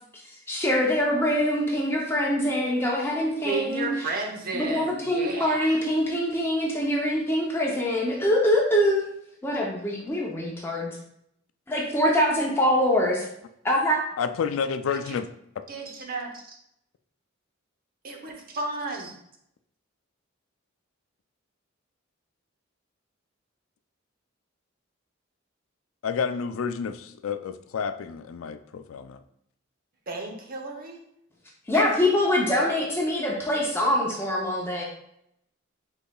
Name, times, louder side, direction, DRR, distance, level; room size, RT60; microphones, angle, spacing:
voice 1, 0.5-3.9 4.5-9.1 9.4-11.0 11.7-13.2 13.7-14.0 31.7-34.8, left 1 dB, 10° left, -2 dB, 0.6 m, -24 dB
voice 2, 3.4-5.8 14.9-15.1 15.7-16.6 18.0-19.1 30.1-31.0 31.7-32.0, right 3 dB, 45° right, 1 dB, 0.9 m, -33 dB
voice 3, 14.2-15.3 26.0-29.2, left 6 dB, 85° left, 10 dB, 0.4 m, -30 dB
5.4 x 4.0 x 2.3 m, 0.75 s
head